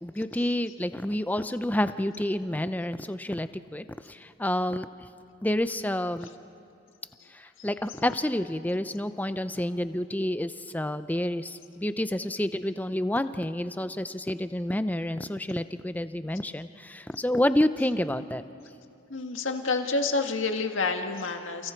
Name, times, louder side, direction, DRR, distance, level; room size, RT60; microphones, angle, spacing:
voice 1, 0.0-5.1 5.4-6.3 7.3-18.4, left 1 dB, 10° left, 11 dB, 0.6 m, -29 dB
voice 2, 19.1-21.7, left 3 dB, 90° left, 5 dB, 1.8 m, -28 dB
30.0 x 29.0 x 4.5 m, 2.7 s
head